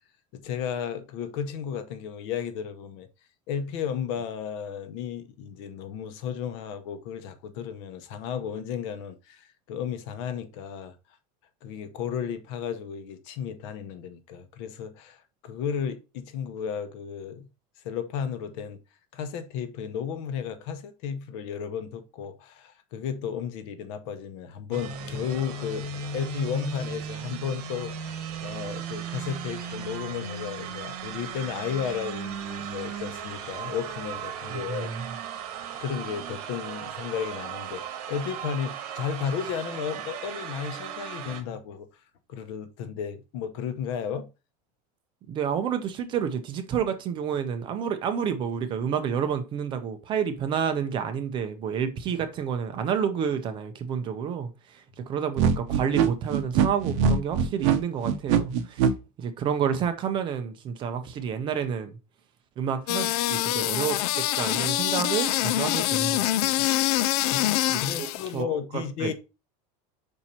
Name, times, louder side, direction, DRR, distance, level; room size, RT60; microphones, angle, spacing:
voice 1, 0.3-3.1 3.5-11.0 11.6-17.5 17.8-18.8 19.1-25.9 26.1-34.9 35.8-41.9 42.3-44.3 67.3-67.5 67.8-69.1, left 7 dB, 50° left, 0.9 m, -33 dB
sound 1, 24.7-41.4, right 6 dB, 90° right, 1.5 m, -36 dB
voice 2, 34.5-35.0 45.3-58.9 59.2-62.0 62.6-66.7 67.0-67.2 67.7-68.1 68.3-69.1, right 7 dB, 25° right, 0.5 m, -29 dB
sound 2, 55.4-58.9, right 7 dB, 55° right, 0.8 m, -22 dB
sound 3, 62.9-68.3, left 15 dB, 75° left, 0.4 m, -25 dB
5.3 x 4.4 x 4.2 m
supercardioid pair, 175°, 20 cm